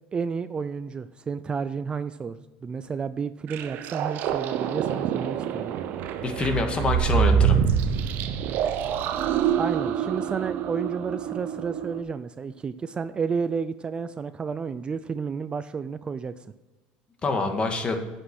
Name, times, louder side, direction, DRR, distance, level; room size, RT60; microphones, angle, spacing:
voice 1, 0.1-5.7 9.6-16.4, right 5 dB, 25° right, 13 dB, 0.4 m, -31 dB
sound 1, 3.5-12.0, right 8 dB, 55° right, 0.9 m, -26 dB
voice 2, 6.2-7.6 17.2-18.0, left 3 dB, 30° left, 5 dB, 1.8 m, -25 dB
8.8 x 7.4 x 6.1 m, 1.2 s
supercardioid pair, 105°, 4 cm